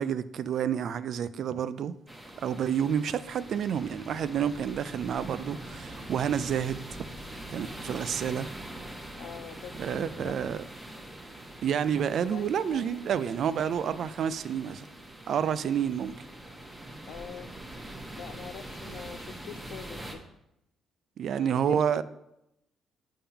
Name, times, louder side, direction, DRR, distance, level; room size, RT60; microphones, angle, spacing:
voice 1, 0.0-1.9 2.4-7.1 7.5-8.5 9.8-10.6 11.6-14.8 15.3-16.1 21.2-22.0, right 8 dB, 65° right, 0.3 m, -29 dB
sound 1, 2.1-20.2, right 1 dB, 15° right, 1.2 m, -43 dB
Microwave oven, 3.2-8.4, left 2 dB, 40° left, 0.8 m, -53 dB
voice 2, 9.2-10.4 12.2-13.0 17.1-17.5 18.2-20.2 21.3-21.8, left 9 dB, 80° left, 0.4 m, -44 dB
7.0 x 3.7 x 5.6 m
cardioid pair, 90°, 0 cm